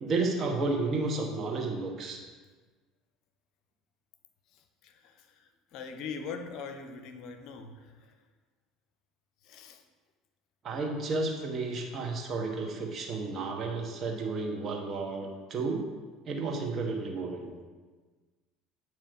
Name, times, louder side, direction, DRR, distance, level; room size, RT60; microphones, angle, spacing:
voice 1, 0.0-2.2 10.6-15.8 16.2-17.5, right 3 dB, 45° right, 1 dB, 1.3 m, -32 dB
voice 2, 4.5-8.2 9.4-9.8, left 5 dB, 60° left, 7 dB, 0.7 m, -42 dB
9.2 x 3.1 x 5.1 m, 1.4 s
hypercardioid pair, 80°, 0 cm